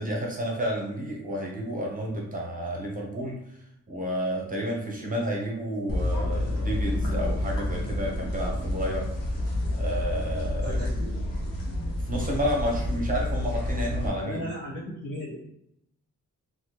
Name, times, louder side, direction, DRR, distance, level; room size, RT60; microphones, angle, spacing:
voice 1, 0.0-3.6 3.9-9.1 9.7-10.8 11.9-14.5, equal, 25° right, -1 dB, 0.7 m, -31 dB
sound 1, 5.9-14.1, left 1 dB, 90° left, 1.0 m, -29 dB
voice 2, 14.2-15.4, left 1 dB, 70° left, -7 dB, 1.3 m, -35 dB
3.3 x 2.2 x 2.9 m, 0.77 s
wide cardioid pair, 130°, 33 cm